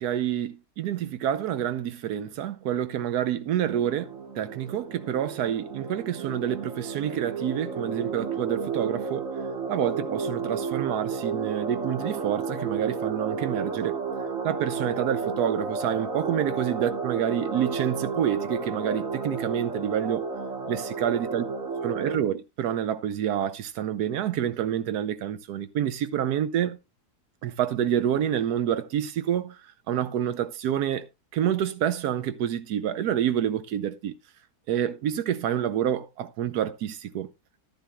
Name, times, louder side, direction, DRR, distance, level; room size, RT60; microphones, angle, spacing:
voice 1, 0.0-9.2 9.7-14.0 14.4-20.2 20.7-21.4 21.8-26.8 27.4-29.6 29.9-31.1 31.3-34.1 34.7-37.3, right 10 dB, 85° right, 1.2 m, -28 dB
sound 1, 3.7-22.2, right 5 dB, 60° right, 1.8 m, -32 dB
11.0 x 10.5 x 2.2 m
omnidirectional pair, 1.6 m